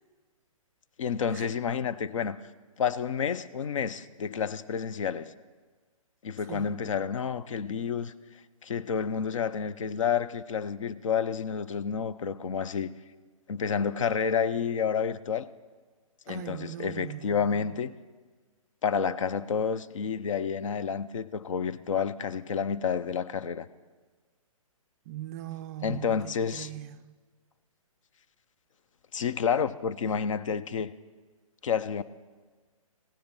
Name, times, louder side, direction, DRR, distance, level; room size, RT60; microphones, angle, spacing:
voice 1, 1.0-2.4 2.8-5.3 6.2-8.1 8.6-12.9 13.5-15.5 16.3-17.9 18.8-23.7 25.8-26.7 29.1-30.9 31.6-32.0, left 6 dB, 60° left, 0.7 m, -29 dB
voice 2, 16.3-17.4 25.1-27.1, right 13 dB, 30° right, 0.3 m, -40 dB
16.0 x 11.5 x 5.5 m
hypercardioid pair, 140°, 18 cm